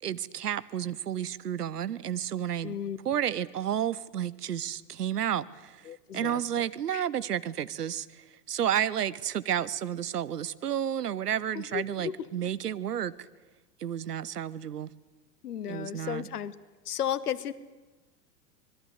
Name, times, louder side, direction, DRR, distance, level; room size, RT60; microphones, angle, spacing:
voice 1, 0.0-2.8 3.0-5.9 6.1-13.1 13.8-14.9 15.7-16.3, right 10 dB, 70° right, 18 dB, 1.1 m, -31 dB
voice 2, 2.6-3.0 5.8-6.4 6.9-7.1 11.5-12.3 15.4-16.5 16.8-17.5, left 9 dB, 65° left, 16 dB, 1.4 m, -34 dB
26.0 x 21.0 x 8.1 m, 1.2 s
figure-of-eight pair, 90°, 49 cm